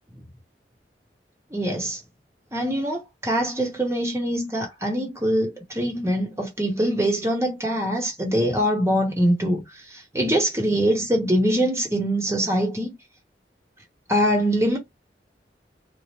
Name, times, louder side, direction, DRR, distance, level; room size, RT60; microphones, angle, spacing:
voice 1, 1.5-2.0 2.5-9.6 10.1-12.9 14.1-14.8, equal, 15° right, 0.9 m, -23 dB
2.8 x 2.0 x 3.1 m
head